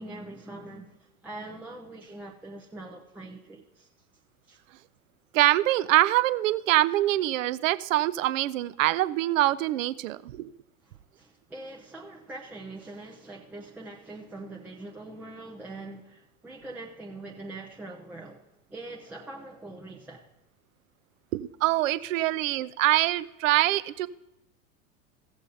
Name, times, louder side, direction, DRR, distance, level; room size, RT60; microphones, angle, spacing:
voice 1, 0.0-3.9 4.4-4.6 10.8-20.3, right 2 dB, 5° right, 0.4 m, -43 dB
voice 2, 5.3-10.5 21.3-24.1, right 16 dB, 60° right, 0.5 m, -24 dB
15.5 x 7.1 x 3.9 m
figure-of-eight pair, 90°, 46 cm